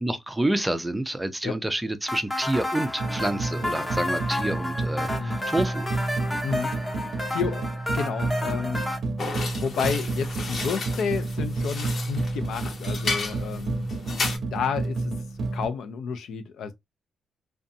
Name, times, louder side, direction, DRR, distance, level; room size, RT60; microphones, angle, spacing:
voice 1, 0.0-5.9, right 1 dB, 10° right, 0.4 m, -28 dB
sound 1, 2.1-9.0, left 1 dB, 15° left, 0.7 m, -31 dB
sound 2, 3.0-15.7, right 3 dB, 60° right, 0.5 m, -30 dB
voice 2, 7.3-7.7 7.9-8.8 9.5-13.9 14.5-15.1 15.5-16.7, left 6 dB, 75° left, 0.5 m, -30 dB
sound 3, 9.2-14.4, left 3 dB, 50° left, 0.8 m, -33 dB
2.6 x 2.2 x 2.6 m
cardioid pair, 110°, 0 cm